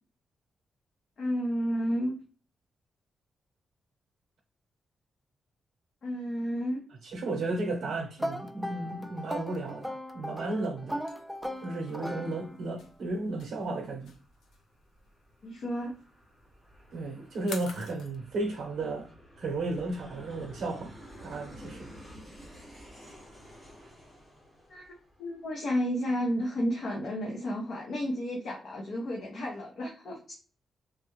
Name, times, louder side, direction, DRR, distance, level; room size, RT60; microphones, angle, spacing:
voice 1, 1.2-2.2 6.0-6.8 15.4-15.9 24.7-24.9 25.2-30.3, equal, 50° left, 0.7 m, -31 dB
voice 2, 7.0-11.0 11.6-14.1 16.9-19.1 19.4-20.9 21.2-21.9, right 2 dB, 65° right, 0.8 m, -34 dB
sound 1, 8.2-12.8, equal, ahead, 0.3 m, -38 dB
sound 2, 11.1-18.2, left 5 dB, 85° left, 0.5 m, -47 dB
Aircraft, 12.6-25.8, equal, 15° left, 1.4 m, -52 dB
3.4 x 2.2 x 3.0 m
wide cardioid pair, 165°, 0 cm